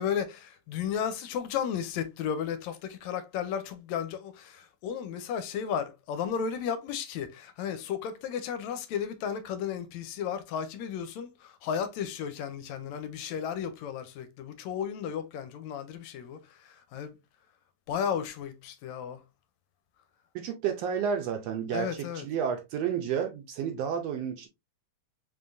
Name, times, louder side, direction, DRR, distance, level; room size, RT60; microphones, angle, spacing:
voice 1, 0.0-17.2 17.9-19.2 21.7-22.3, left 8 dB, 80° left, 1.8 m, -34 dB
voice 2, 20.3-24.5, right 7 dB, 75° right, 1.5 m, -31 dB
4.5 x 3.7 x 2.5 m
omnidirectional pair, 3.3 m